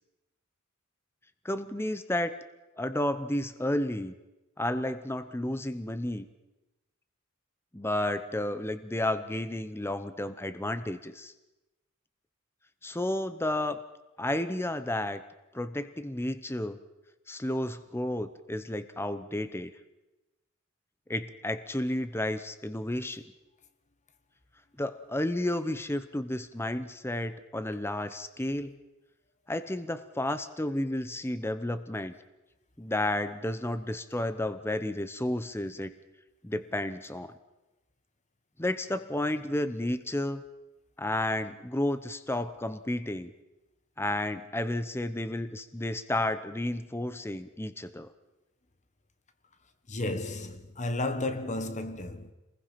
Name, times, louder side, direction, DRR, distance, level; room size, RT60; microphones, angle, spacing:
voice 1, 1.4-2.4 2.8-4.1 4.6-6.3 7.7-11.3 12.8-13.8 14.2-15.2 15.5-16.8 17.3-19.7 21.1-23.2 24.8-28.8 29.5-32.2 32.8-35.9 36.4-37.3 38.6-40.4 41.0-43.3 44.0-48.1, left 1 dB, 10° left, 0.8 m, -32 dB
voice 2, 49.9-52.3, left 2 dB, 35° left, 1.4 m, -33 dB
27.0 x 20.5 x 5.9 m
head